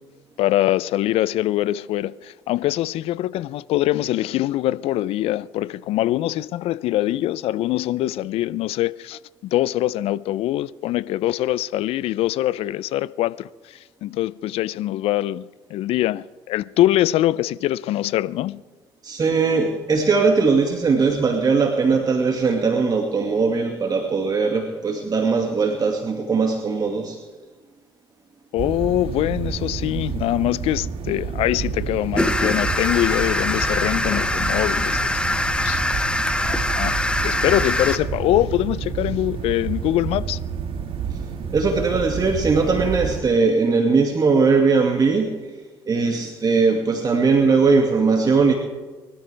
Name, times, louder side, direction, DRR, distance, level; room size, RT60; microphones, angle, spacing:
voice 1, 0.4-18.6 28.5-35.1 35.6-35.8 36.4-37.0 37.2-40.4, left 14 dB, 70° left, 0.5 m, -23 dB
voice 2, 19.0-27.2 41.5-45.4 45.9-48.5, right 4 dB, 40° right, 2.1 m, -19 dB
sound 1, 28.6-43.2, right 6 dB, 60° right, 1.9 m, -29 dB
sound 2, 32.2-38.0, left 1 dB, 10° left, 1.5 m, -23 dB
24.5 x 13.0 x 3.4 m
hypercardioid pair, 65°, 10 cm